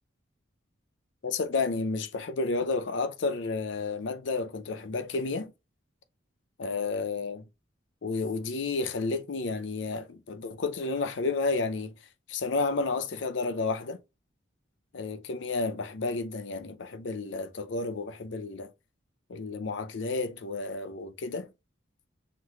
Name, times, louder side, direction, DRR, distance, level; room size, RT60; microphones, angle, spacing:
voice 1, 1.2-5.5 6.6-7.4 8.0-11.9 12.3-14.0 14.9-18.7 19.3-21.5, left 3 dB, 70° left, 0.5 m, -31 dB
5.9 x 3.1 x 2.3 m
head